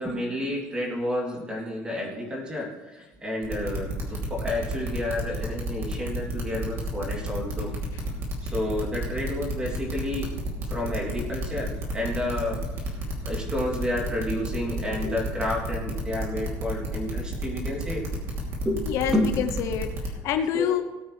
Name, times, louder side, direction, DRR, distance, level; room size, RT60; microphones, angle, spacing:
voice 1, 0.0-7.7 8.4-10.3 10.7-13.0 13.2-18.0 18.6-19.3 20.5-20.6, left 1 dB, 15° right, -3 dB, 3.0 m, -30 dB
sound 1, 3.4-20.1, right 1 dB, 40° right, 2.9 m, -31 dB
voice 2, 18.9-20.8, left 9 dB, 55° left, 8 dB, 0.8 m, -27 dB
18.5 x 8.9 x 3.3 m, 1.2 s
cardioid pair, 175°, 6 cm